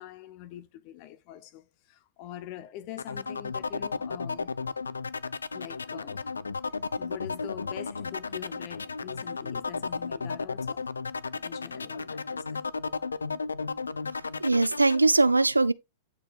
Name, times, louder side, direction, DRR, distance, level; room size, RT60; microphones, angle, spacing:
voice 1, 0.0-4.6 5.5-6.3 7.0-10.9 11.3-12.6, left 13 dB, 40° left, 0.6 m, -44 dB
sound 1, 3.0-15.0, left 4 dB, 80° left, 0.4 m, -34 dB
voice 2, 14.1-15.7, right 3 dB, 85° right, 0.4 m, -22 dB
9.7 x 4.7 x 3.4 m
figure-of-eight pair, 100°, 0 cm